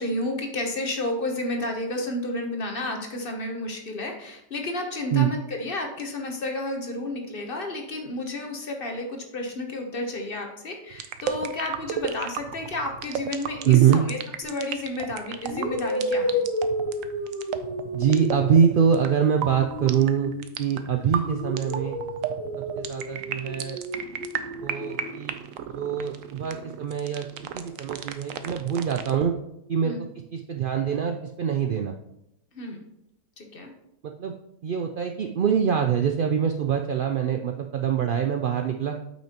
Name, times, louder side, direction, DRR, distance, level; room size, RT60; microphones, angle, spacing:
voice 1, 0.0-14.2 14.4-16.4 29.8-30.0 32.5-32.8 33.4-33.7, left 2 dB, 45° left, 3 dB, 1.1 m, -31 dB
sound 1, 10.9-29.3, right 8 dB, 70° right, 1.0 m, -34 dB
voice 2, 13.6-14.0 17.9-22.0 22.8-23.8 24.6-25.3 25.7-27.3 27.5-29.3 29.7-31.9 34.0-34.3 34.6-39.0, right 8 dB, 85° right, 4 dB, 0.4 m, -24 dB
sound 2, 14.4-14.7 15.5-20.8 21.2-25.2, equal, 10° left, 1.0 m, -32 dB
8.8 x 5.8 x 2.9 m, 0.81 s
omnidirectional pair, 1.5 m